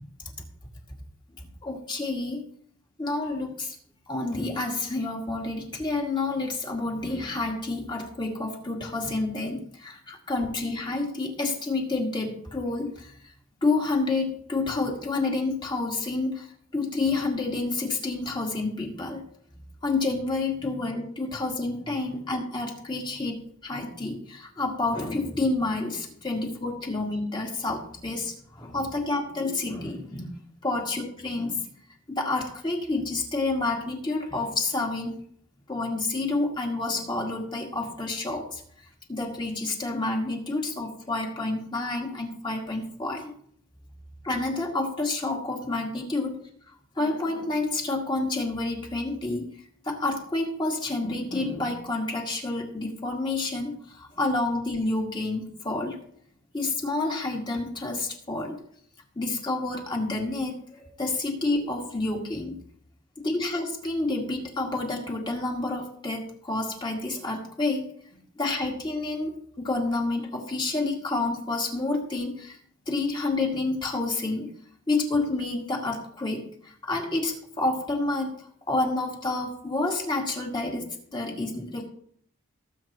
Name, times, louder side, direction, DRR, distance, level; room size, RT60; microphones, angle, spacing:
voice 1, 1.6-2.4 3.0-3.8 4.1-13.1 13.6-19.2 19.8-30.4 30.6-31.7 32.1-35.2 35.7-38.6 39.1-43.3 44.2-46.4 47.0-49.5 49.8-56.0 56.5-58.6 59.2-62.6 63.2-72.6 72.9-74.5 74.9-81.9, left 2 dB, 25° left, 0 dB, 2.2 m, -29 dB
19.0 x 8.0 x 3.0 m, 0.63 s
head